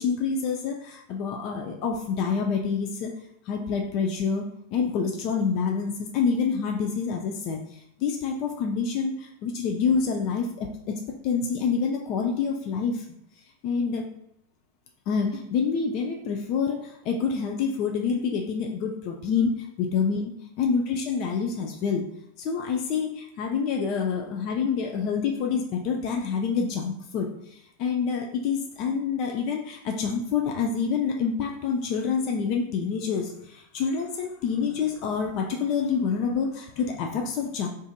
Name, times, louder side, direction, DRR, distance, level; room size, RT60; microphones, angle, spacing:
voice 1, 0.0-3.1 3.5-4.5 4.7-13.0 13.6-14.1 15.1-22.1 22.4-37.7, left 6 dB, 40° left, 1 dB, 0.3 m, -27 dB
2.5 x 2.5 x 2.3 m, 0.78 s
figure-of-eight pair, 90°, 0 cm